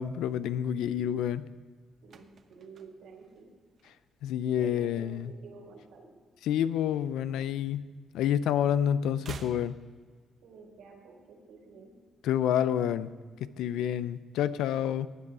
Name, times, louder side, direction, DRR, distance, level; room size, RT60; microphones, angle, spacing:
voice 1, 0.0-1.4 4.2-5.3 6.4-7.9 8.1-9.7 12.2-13.1 13.4-15.1, left 10 dB, 90° left, 14 dB, 0.5 m, -28 dB
sound 1, 2.0-4.4 4.7-5.0 5.2-6.7 7.0-8.3 8.6-10.7 11.0-11.1, right 6 dB, 55° right, 0.9 m, -50 dB
voice 2, 2.0-3.5 4.6-6.1 10.4-11.9, right 4 dB, 85° right, -1 dB, 3.9 m, -50 dB
16.0 x 9.7 x 4.8 m, 1.5 s
cardioid pair, 90°, 0 cm